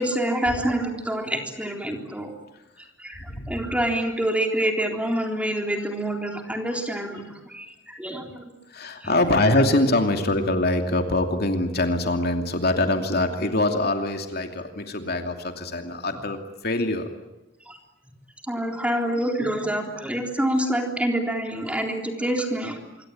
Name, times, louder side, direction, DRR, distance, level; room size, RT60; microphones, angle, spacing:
voice 1, 0.0-2.3 3.0-8.5 9.0-9.1 16.1-16.2 17.7-17.8 18.5-22.8, right 1 dB, 5° right, 3 dB, 3.7 m, -27 dB
voice 2, 8.7-16.4 16.6-17.1, left 2 dB, 55° left, 5 dB, 2.7 m, -23 dB
26.0 x 24.0 x 9.0 m, 0.93 s
head